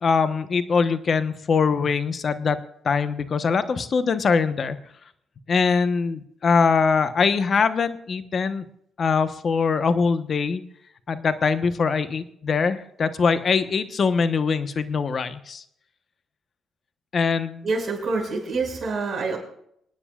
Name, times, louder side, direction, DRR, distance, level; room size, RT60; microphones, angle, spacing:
voice 1, 0.0-4.8 5.5-8.6 9.0-10.6 11.1-15.6 17.1-17.7, left 5 dB, 45° left, 11 dB, 1.1 m, -22 dB
voice 2, 17.6-19.4, right 3 dB, 40° right, -1 dB, 6.1 m, -26 dB
28.5 x 9.6 x 2.4 m, 0.71 s
cardioid pair, 90°, 0 cm